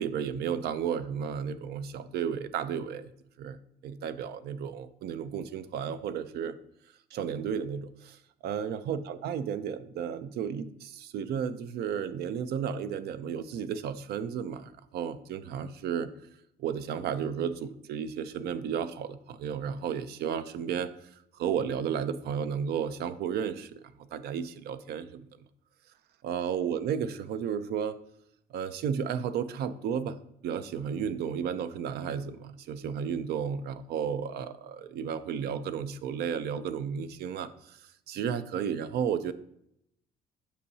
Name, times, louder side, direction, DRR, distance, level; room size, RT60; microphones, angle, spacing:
voice 1, 0.0-3.1 3.4-3.6 3.8-6.6 7.1-8.2 8.4-16.1 16.6-20.9 21.4-23.8 24.1-25.3 26.2-28.0 28.5-30.2 30.4-37.8 38.1-39.3, right 7 dB, 70° right, 13 dB, 0.5 m, -33 dB
8.2 x 5.6 x 2.7 m, 0.76 s
cardioid pair, 110°, 17 cm